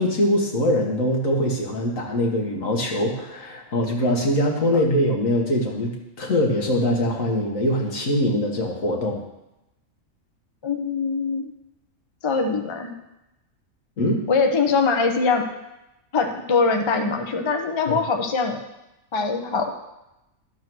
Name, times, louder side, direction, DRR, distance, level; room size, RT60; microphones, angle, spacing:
voice 1, 0.0-9.2 14.0-14.2 17.9-18.0, left 1 dB, 70° left, 0 dB, 1.9 m, -23 dB
voice 2, 10.6-11.5 12.2-13.0 14.3-15.5 16.1-18.6 19.1-19.7, left 4 dB, 25° left, 4 dB, 0.7 m, -22 dB
12.5 x 4.6 x 6.1 m, 0.93 s
omnidirectional pair, 1.4 m